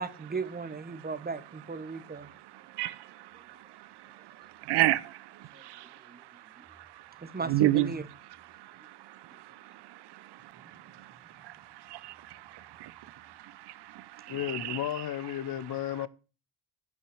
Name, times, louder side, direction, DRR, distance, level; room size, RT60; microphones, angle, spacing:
voice 1, 0.0-2.3 3.5-3.6 5.5-5.6 6.1-6.2 6.6-6.7 7.2-8.0, right 4 dB, 20° right, 1.2 m, -36 dB
voice 2, 2.5-6.0 6.7-7.9 8.5-14.8, right 15 dB, 60° right, 0.7 m, -34 dB
voice 3, 14.3-16.1, left 11 dB, 45° left, 0.9 m, -33 dB
9.2 x 5.5 x 6.3 m
hypercardioid pair, 60°, 48 cm